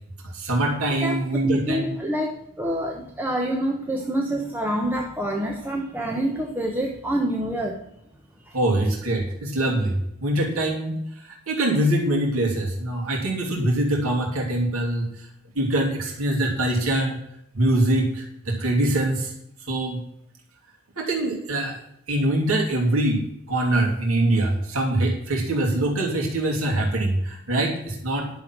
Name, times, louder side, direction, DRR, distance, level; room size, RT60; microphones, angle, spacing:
voice 1, 0.3-1.9 8.5-10.9 11.2-15.3 15.5-17.2 17.5-19.3 19.7-20.0 21.0-21.8 22.1-28.3, right 1 dB, 70° right, -2 dB, 2.8 m, -23 dB
voice 2, 1.0-7.9 8.4-8.6, right 1 dB, 10° right, 0 dB, 1.1 m, -27 dB
11.0 x 7.1 x 6.0 m, 0.76 s
head